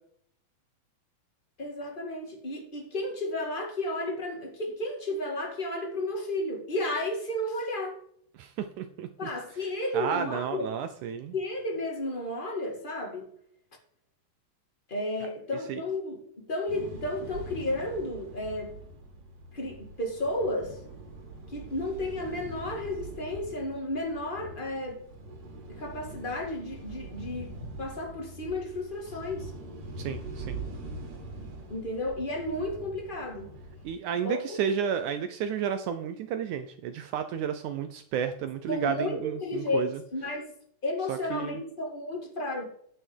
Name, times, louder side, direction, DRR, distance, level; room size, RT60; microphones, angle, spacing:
voice 1, 1.6-8.0 9.2-10.7 11.3-13.3 14.9-18.7 19.5-20.8 21.5-25.0 25.7-27.5 27.8-29.5 31.7-33.5 34.2-34.4 38.7-40.5 40.8-42.6, left 1 dB, 25° left, 1 dB, 1.2 m, -32 dB
voice 2, 8.3-9.3 9.9-11.3 15.7-15.8 30.0-30.6 33.8-40.0 41.1-41.6, right 8 dB, 80° right, 9 dB, 1.8 m, -32 dB
sound 1, 16.7-34.0, right 2 dB, 55° right, 3.7 m, -43 dB
9.8 x 6.3 x 4.6 m, 0.65 s
omnidirectional pair, 4.1 m